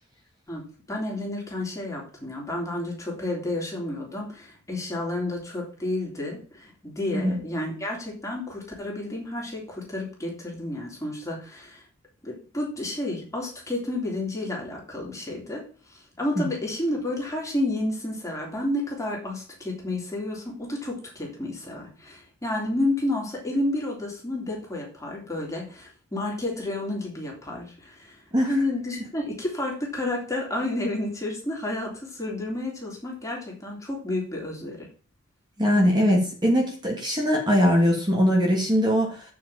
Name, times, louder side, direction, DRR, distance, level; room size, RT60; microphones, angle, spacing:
voice 1, 0.9-11.8 12.2-15.6 15.9-34.9, left 1 dB, 15° left, -2 dB, 3.3 m, -31 dB
voice 2, 35.6-39.2, equal, 20° right, -2 dB, 2.5 m, -21 dB
7.6 x 6.2 x 7.3 m, 0.40 s
head